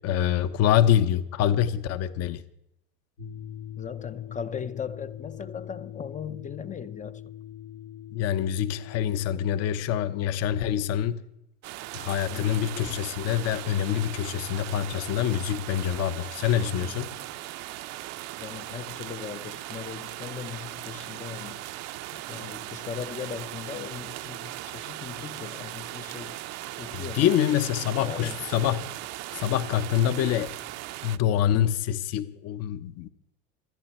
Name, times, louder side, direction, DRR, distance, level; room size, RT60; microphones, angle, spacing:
voice 1, 0.0-2.4 8.1-11.2 11.9-17.1 26.9-28.9 29.3-30.5 31.0-33.1, left 10 dB, 50° left, 1.0 m, -25 dB
sound 1, 3.2-9.4, left 10 dB, 90° left, 2.7 m, -42 dB
voice 2, 3.8-7.3 12.3-12.6 16.8-16.9 18.4-21.6 22.1-26.4 26.8-27.3 28.0-28.4, left 7 dB, 25° left, 0.6 m, -38 dB
sound 2, 11.6-31.2, right 16 dB, 50° right, 0.7 m, -38 dB
26.0 x 9.7 x 4.4 m
supercardioid pair, 110°, 33 cm